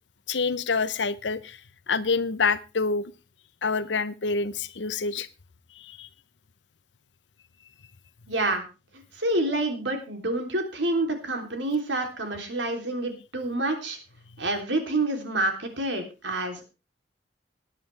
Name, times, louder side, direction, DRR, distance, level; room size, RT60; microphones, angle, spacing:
voice 1, 0.3-1.6 1.9-3.0 3.6-5.3 5.8-6.1, left 4 dB, 90° left, 0.8 m, -27 dB
voice 2, 8.3-8.6 9.2-14.0 14.4-16.6, right 2 dB, 90° right, 3.3 m, -28 dB
18.5 x 10.0 x 3.4 m
head